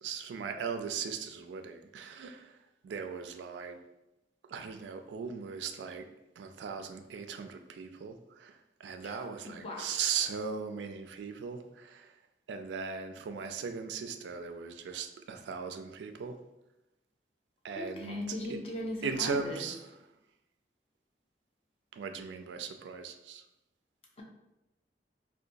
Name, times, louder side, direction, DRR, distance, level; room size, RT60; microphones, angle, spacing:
voice 1, 0.0-2.4 2.8-3.8 4.5-6.1 6.4-8.6 8.8-12.1 12.5-16.4 17.6-18.2 18.5-18.6 19.0-19.8 21.9-23.4, right 6 dB, 85° right, 7 dB, 0.3 m, -38 dB
voice 2, 9.0-9.9 17.7-19.7, left 1 dB, 35° left, 0 dB, 0.5 m, -39 dB
3.8 x 2.2 x 2.5 m, 0.94 s
head